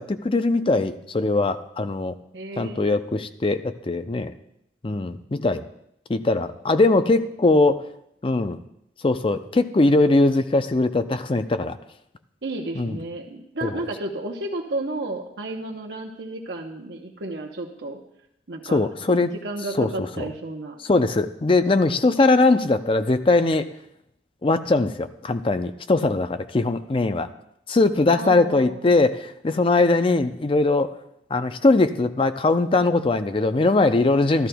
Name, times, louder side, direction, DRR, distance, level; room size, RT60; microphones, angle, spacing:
voice 1, 0.0-2.2 2.6-4.3 4.8-5.6 6.1-7.8 8.2-8.6 9.0-11.8 12.8-13.0 13.6-13.8 18.6-19.3 19.8-20.3 20.8-23.7 24.4-27.3 27.7-30.9 31.3-34.5, left 2 dB, 30° left, 10 dB, 0.5 m, -21 dB
voice 2, 2.3-3.0 12.4-18.0 18.5-18.8 19.2-20.8 28.1-28.9, right 2 dB, 75° right, 0 dB, 0.9 m, -32 dB
13.5 x 12.5 x 2.3 m, 0.77 s
head